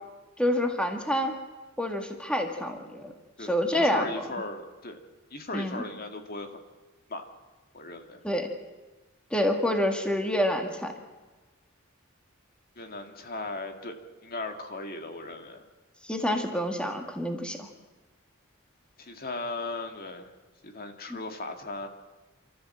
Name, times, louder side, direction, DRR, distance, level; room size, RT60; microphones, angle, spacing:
voice 1, 0.4-1.3 1.8-3.1 3.4-4.1 5.5-5.9 8.2-8.5 9.3-10.9 16.0-17.7 21.1-21.2, left 1 dB, 5° left, 4 dB, 1.9 m, -27 dB
voice 2, 3.4-5.0 5.3-6.6 7.1-7.2 7.7-8.2 12.8-15.6 19.0-20.3 20.6-21.9, left 2 dB, 45° left, 5 dB, 2.0 m, -37 dB
29.5 x 13.5 x 7.7 m, 1.2 s
head